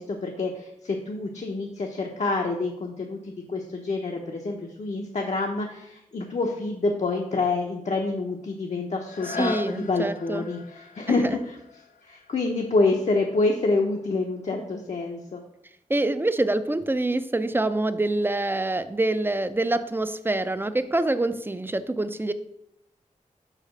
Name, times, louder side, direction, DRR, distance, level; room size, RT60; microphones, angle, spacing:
voice 1, 0.0-11.6 12.0-15.4, left 3 dB, 55° left, 1 dB, 0.8 m, -27 dB
sound 1, 9.0-14.6 15.2-15.3, left 6 dB, 75° left, 0.5 m, -41 dB
voice 2, 9.3-10.4 11.1-11.4 15.9-22.3, right 2 dB, 15° right, 11 dB, 0.5 m, -26 dB
5.6 x 5.0 x 6.4 m, 0.81 s
wide cardioid pair, 100°, 14 cm